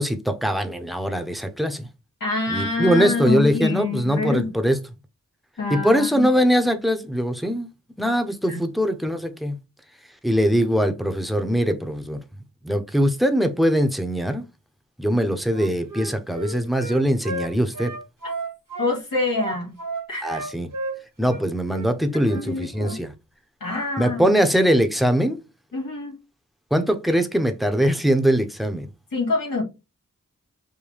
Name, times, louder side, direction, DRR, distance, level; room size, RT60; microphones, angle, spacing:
voice 1, 0.0-1.9 2.5-4.8 5.7-7.7 8.0-9.6 10.2-12.2 12.6-14.5 15.0-17.9 20.2-20.7 21.2-23.1 24.0-25.4 26.7-28.9, equal, ahead, 0.8 m, -22 dB
voice 2, 2.2-4.5 5.6-6.3 8.5-8.6 18.8-19.7 20.1-20.4 22.1-23.0 23.6-24.4 25.7-26.2 29.1-29.6, left 3 dB, 90° left, 2.0 m, -26 dB
Wind instrument woodwind instrument, 15.5-18.9 19.4-21.4 21.7-21.9 22.2-22.5 22.7-23.0, right 2 dB, 75° right, 1.5 m, -33 dB
5.5 x 2.2 x 3.3 m
cardioid pair, 40°, 33 cm